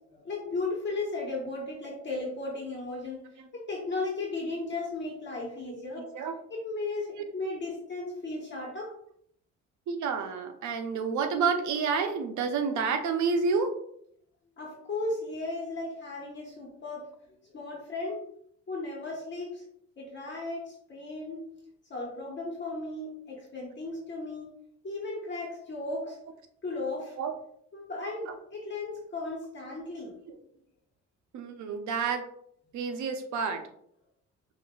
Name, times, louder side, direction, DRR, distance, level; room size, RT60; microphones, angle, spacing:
voice 1, 0.1-3.2 3.5-6.1 6.5-7.1 7.3-8.9 14.6-17.1 17.5-18.2 18.7-19.6 20.0-21.4 21.9-24.5 24.8-26.2 26.6-27.2 27.7-30.1, left 2 dB, 40° left, -3 dB, 1.2 m, -35 dB
voice 2, 5.7-6.3 9.9-13.7 27.2-27.3 28.3-28.4 30.3-30.4 31.3-32.2 32.7-33.6, right 5 dB, 70° right, 6 dB, 0.7 m, -29 dB
5.7 x 2.6 x 2.3 m, 0.69 s
cardioid pair, 90°, 30 cm